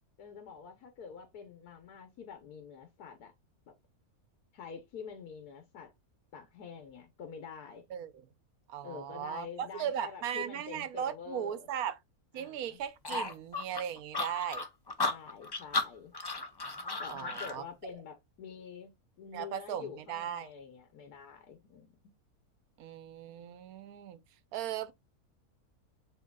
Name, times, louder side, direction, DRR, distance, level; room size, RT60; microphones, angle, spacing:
voice 1, 0.2-3.3 3.7-3.8 4.5-5.9 6.3-7.9 8.8-11.7 12.3-12.8 15.0-16.1 17.0-18.9 19.2-22.1, left 6 dB, 80° left, 1.3 m, -47 dB
voice 2, 7.9-8.3 8.7-12.0 12.3-14.7 17.1-17.6 19.3-20.5 22.8-24.2 24.5-24.9, right 9 dB, 75° right, 1.1 m, -37 dB
sound 1, 13.0-17.6, left 3 dB, 35° left, 0.3 m, -34 dB
7.3 x 3.2 x 2.3 m
omnidirectional pair, 1.6 m